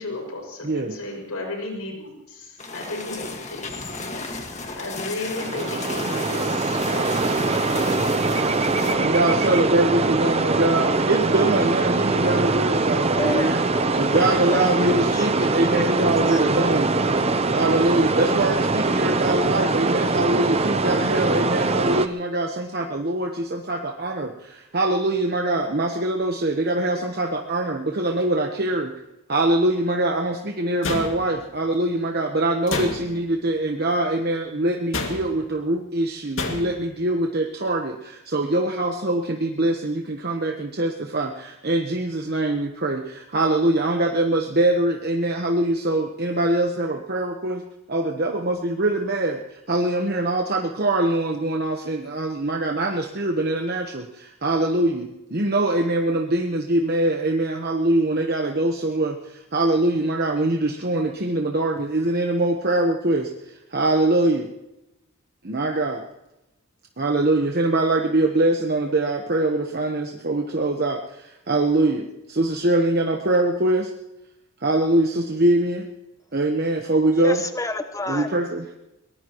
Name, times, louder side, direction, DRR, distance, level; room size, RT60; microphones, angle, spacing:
voice 1, 0.0-4.5 4.8-7.3 8.8-9.3, left 2 dB, 80° left, 2 dB, 6.0 m, -34 dB
voice 2, 0.6-1.0 9.0-13.6 13.9-17.0 17.5-28.9 29.3-64.5 65.4-66.0 67.0-73.9 74.6-75.9 76.3-77.4 78.1-78.7, right 2 dB, 45° right, 2 dB, 1.1 m, -23 dB
sound 1, 2.6-8.9, left 3 dB, 30° left, 1.8 m, -33 dB
sound 2, 5.3-22.1, right 3 dB, 30° right, 0.7 m, -22 dB
voice 3, 13.1-14.7 15.1-15.3 15.7-16.0 16.3-16.4 17.0-17.1 77.2-78.3, left 2 dB, 15° left, 7 dB, 1.0 m, -30 dB
sound 3, 30.8-31.6 32.7-33.3 34.9-35.5 36.4-36.9, left 3 dB, 60° left, 2.3 m, -29 dB
22.5 x 19.5 x 3.1 m, 0.94 s
head